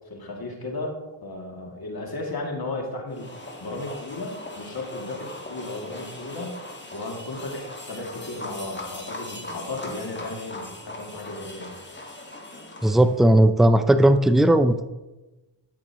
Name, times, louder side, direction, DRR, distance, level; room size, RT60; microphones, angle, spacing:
voice 1, 0.1-0.9 1.2-3.3 3.6-6.6 6.9-11.7, left 2 dB, 50° left, 0 dB, 2.6 m, -34 dB
sound 1, 3.1-13.2, left 2 dB, 25° left, 1.9 m, -40 dB
voice 2, 12.8-14.8, right 1 dB, ahead, 11 dB, 0.5 m, -17 dB
14.0 x 6.0 x 3.1 m, 1.1 s
cardioid pair, 50°, 46 cm